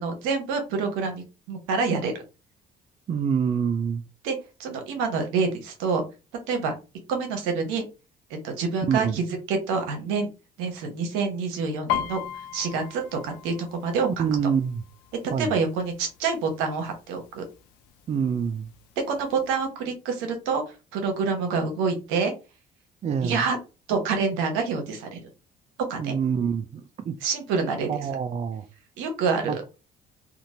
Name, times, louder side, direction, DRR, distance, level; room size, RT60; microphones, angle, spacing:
voice 1, 0.0-2.1 4.2-6.0 6.5-6.7 7.1-7.8 8.4-10.3 10.6-12.2 12.5-14.1 15.4-17.4 19.1-20.6 20.9-22.3 23.2-23.6 23.9-25.2 25.9-26.1 27.2-27.9 29.0-29.6, right 5 dB, 80° right, 0.9 m, -27 dB
voice 2, 3.1-4.0 8.9-9.2 14.0-14.8 15.3-15.6 18.1-18.7 23.0-23.5 26.0-27.2 27.9-28.7 29.4-29.6, right 7 dB, 35° right, 0.4 m, -26 dB
Piano, 11.9-15.5 15.9-16.3 16.6-17.3 17.9-18.0 18.2-19.2 19.6-19.7, left 11 dB, 85° left, 0.4 m, -34 dB
2.9 x 2.5 x 2.7 m
hypercardioid pair, 65°, 20 cm